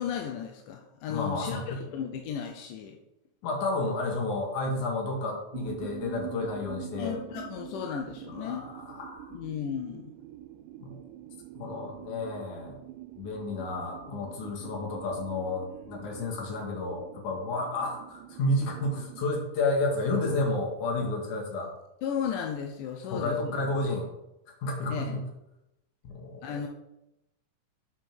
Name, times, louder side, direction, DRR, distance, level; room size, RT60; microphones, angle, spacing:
voice 1, 0.0-3.0 7.0-8.7 9.3-10.1 22.0-23.4 24.9-25.2 26.4-26.7, left 8 dB, 90° left, 2 dB, 2.4 m, -34 dB
voice 2, 1.1-1.8 3.4-7.2 8.3-9.3 10.8-11.0 11.5-12.8 13.2-21.7 23.1-24.1 24.6-25.2 26.0-26.5, left 2 dB, 70° left, 0 dB, 3.3 m, -31 dB
sound 1, 5.5-19.3, right 14 dB, 90° right, 2.2 m, -45 dB
8.3 x 5.4 x 6.0 m, 0.87 s
omnidirectional pair, 3.6 m